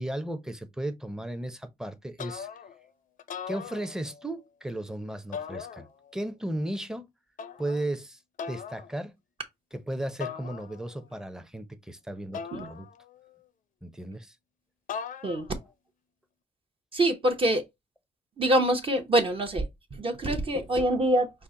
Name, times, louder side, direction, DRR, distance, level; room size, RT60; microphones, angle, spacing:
voice 1, 0.0-2.5 3.5-5.9 6.1-7.1 7.6-8.2 8.5-9.1 9.7-12.9 13.8-14.3, right 1 dB, 5° right, 0.6 m, -35 dB
sound 1, 2.2-2.8 3.2-4.3 5.3-6.2 7.4-7.9 8.4-8.9 10.2-11.0 12.3-13.3 14.9-15.6, left 7 dB, 65° left, 0.5 m, -39 dB
voice 2, 16.9-17.6 18.4-19.7 19.9-21.3, right 1 dB, 35° right, 0.8 m, -25 dB
5.4 x 2.1 x 3.6 m
cardioid pair, 95°, 15 cm